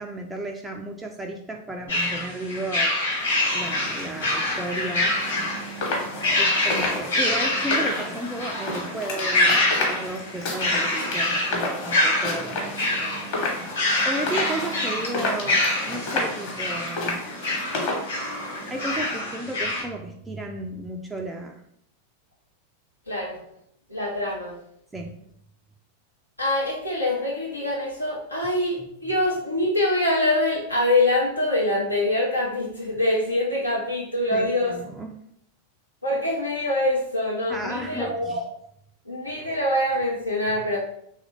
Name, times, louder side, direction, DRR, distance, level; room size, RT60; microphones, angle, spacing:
voice 1, 0.0-2.9 3.5-5.1 6.4-13.2 14.1-17.3 18.7-21.6 24.9-25.2 34.3-35.1 37.5-38.4, right 1 dB, 10° right, 1 dB, 0.3 m, -33 dB
sound 1, 1.9-19.8, left 2 dB, 70° left, 1.1 m, -26 dB
sound 2, 3.2-19.2, left 2 dB, 45° left, 1.1 m, -32 dB
voice 2, 23.1-23.4 23.9-24.6 26.4-34.8 36.0-38.4 39.1-40.8, left 1 dB, 85° left, -4 dB, 0.7 m, -24 dB
3.1 x 2.4 x 3.2 m, 0.71 s
figure-of-eight pair, 90°, 0 cm